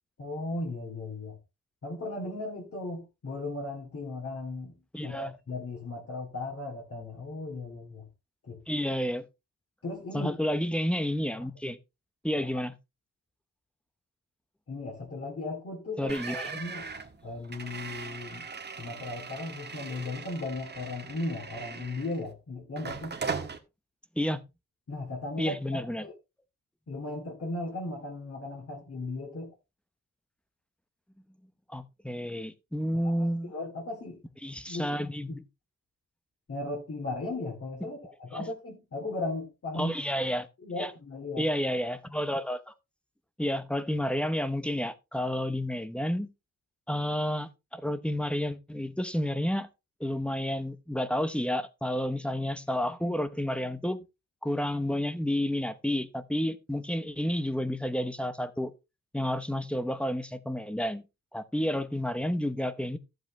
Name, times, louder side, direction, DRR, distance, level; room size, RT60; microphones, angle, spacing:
voice 1, 0.2-1.4 1.8-4.8 5.0-8.0 8.4-8.6 9.8-10.3 11.4-11.5 14.7-16.9 17.2-18.4 18.8-23.1 24.9-26.1 26.9-29.5 33.0-34.2 34.7-35.0 36.5-39.9 40.6-41.5, left 2 dB, 45° left, 2.8 m, -36 dB
voice 2, 4.9-5.3 8.7-9.3 10.1-11.8 12.2-12.8 16.0-16.6 24.2-24.4 25.4-26.1 31.7-33.5 34.4-35.4 37.8-37.9 38.3-38.4 39.7-40.5 40.8-40.9 41.4-42.7 43.4-46.3 46.9-49.7 50.0-54.0 54.4-58.7 59.1-61.0 61.3-63.0, equal, 5° left, 0.8 m, -30 dB
sound 1, 16.1-22.3 22.8-23.6, right 5 dB, 35° right, 1.5 m, -39 dB
14.5 x 7.8 x 3.1 m
wide cardioid pair, 165°, 31 cm